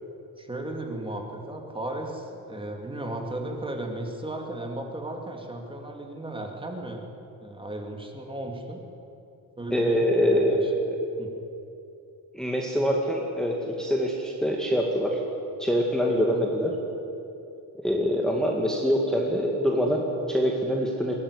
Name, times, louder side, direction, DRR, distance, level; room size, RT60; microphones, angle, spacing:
voice 1, 0.4-7.1 7.4-8.8 9.6-10.7 11.2-11.3, right 1 dB, 15° right, 2 dB, 2.6 m, -35 dB
voice 2, 9.7-11.0 12.3-15.2 15.6-16.8 17.8-21.2, equal, ahead, -1 dB, 2.1 m, -24 dB
21.5 x 16.0 x 9.9 m, 2.8 s
cardioid pair, 140°, 37 cm